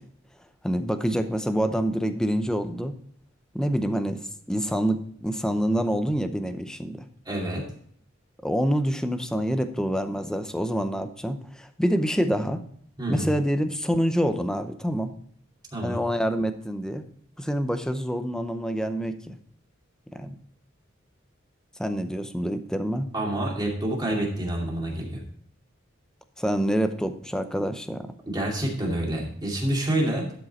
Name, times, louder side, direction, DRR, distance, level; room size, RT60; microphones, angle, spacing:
voice 1, 0.6-2.9 3.5-4.2 4.5-7.1 8.4-12.6 13.1-15.1 15.8-17.0 17.4-19.4 20.1-20.3 21.8-23.1 26.4-28.1, equal, 5° left, 9 dB, 0.6 m, -26 dB
voice 2, 7.3-7.6 13.0-13.3 15.7-16.0 23.1-25.2 28.3-30.3, right 1 dB, 20° right, -2 dB, 2.5 m, -27 dB
12.0 x 5.4 x 4.2 m, 0.63 s
head